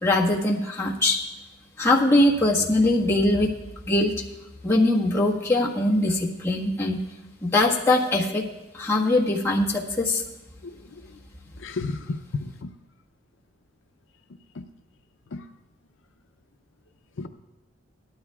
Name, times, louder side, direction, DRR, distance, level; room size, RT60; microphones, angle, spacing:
voice 1, 0.0-1.2 1.8-3.5 3.8-4.1 4.6-7.0 7.4-8.4 8.7-10.2, left 2 dB, 15° left, -4 dB, 1.5 m, -21 dB
voice 2, 11.6-12.7 14.6-14.7 15.3-15.4 17.2-17.3, left 3 dB, 70° left, 6 dB, 0.5 m, -32 dB
18.5 x 13.0 x 2.3 m, 0.99 s
head